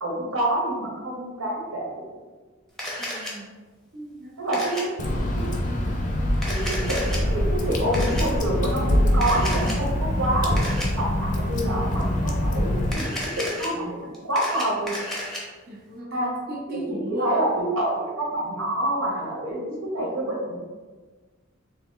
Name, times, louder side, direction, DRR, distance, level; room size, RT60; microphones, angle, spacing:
voice 1, 0.0-2.0 4.4-5.1 5.3-5.4 6.5-14.9 16.1-16.3 16.7-20.6, right 1 dB, 90° right, -3 dB, 1.2 m, -27 dB
Camera, 2.8-3.3 4.5-4.8 6.3-7.2 7.9-8.2 9.2-9.8 10.6-10.9 12.8-13.7 14.1-15.4, left 1 dB, ahead, 0.6 m, -32 dB
voice 2, 3.0-3.5 3.9-4.6 15.7-17.4 20.0-20.2, equal, 45° right, -5 dB, 0.6 m, -37 dB
Water / Drip, 5.0-12.9, left 1 dB, 40° left, 0.5 m, -24 dB
3.4 x 3.0 x 3.7 m, 1.4 s
head